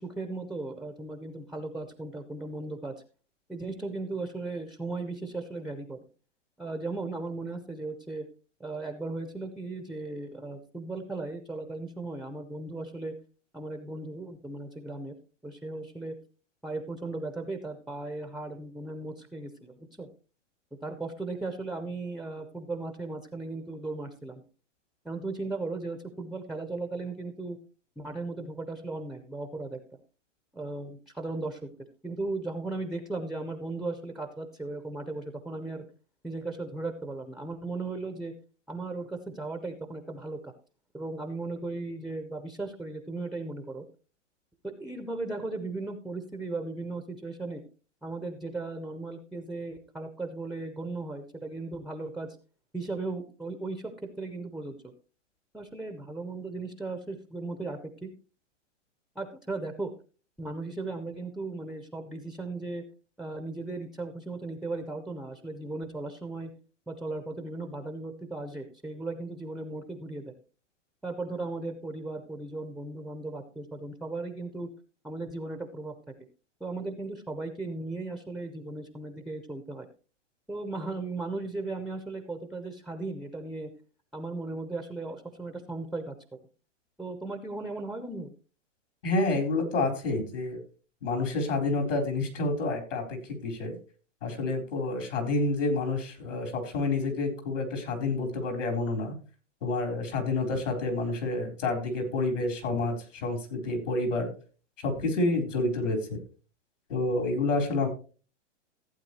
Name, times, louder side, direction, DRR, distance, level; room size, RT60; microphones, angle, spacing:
voice 1, 0.0-2.9 3.5-6.0 6.6-8.3 8.6-13.1 13.5-15.2 15.4-16.1 16.6-20.1 20.8-24.4 25.0-27.6 28.0-29.8 30.5-31.7 32.0-35.8 36.2-38.3 38.7-40.5 40.9-43.8 44.6-47.6 48.0-52.4 52.7-53.9 54.2-54.9 55.5-58.1 59.2-59.9 60.4-62.8 63.2-66.5 66.9-70.3 71.0-74.7 75.0-75.9 76.6-79.9 80.5-83.7 84.1-86.1 87.0-88.3, right 2 dB, ahead, 7 dB, 0.4 m, -36 dB
voice 2, 89.0-90.6 91.0-93.7 94.2-99.1 99.6-104.3 104.8-106.2 106.9-107.9, left 2 dB, 80° left, 4 dB, 4.1 m, -29 dB
15.0 x 8.4 x 3.1 m, 0.36 s
hypercardioid pair, 130°, 37 cm